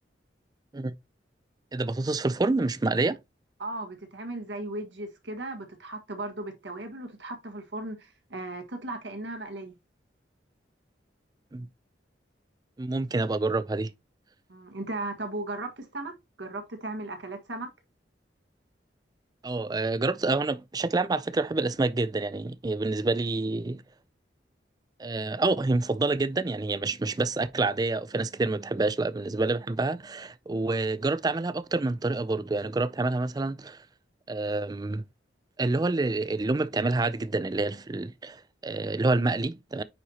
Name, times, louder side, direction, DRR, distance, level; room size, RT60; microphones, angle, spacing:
voice 1, 1.7-3.2 11.5-11.7 12.8-13.9 19.4-23.8 25.0-33.8 34.3-35.0 35.6-39.8, right 3 dB, 20° right, 0.4 m, -27 dB
voice 2, 3.6-9.7 14.5-17.7, right 2 dB, 90° right, 1.6 m, -36 dB
9.4 x 4.3 x 2.8 m
head